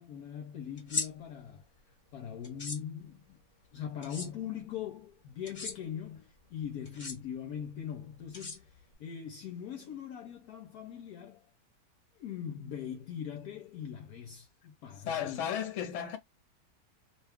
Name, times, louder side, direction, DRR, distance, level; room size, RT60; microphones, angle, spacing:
voice 1, 0.0-1.6 2.1-3.4 3.7-11.5 12.2-15.5, left 9 dB, 70° left, 1.0 m, -41 dB
sound 1, 0.8-1.1 2.4-2.8 4.0-4.3 5.4-5.7 6.8-7.1 8.3-8.9, left 4 dB, 30° left, 1.0 m, -36 dB
voice 2, 15.1-16.2, left 9 dB, 55° left, 1.0 m, -34 dB
2.9 x 2.3 x 3.3 m
omnidirectional pair, 1.9 m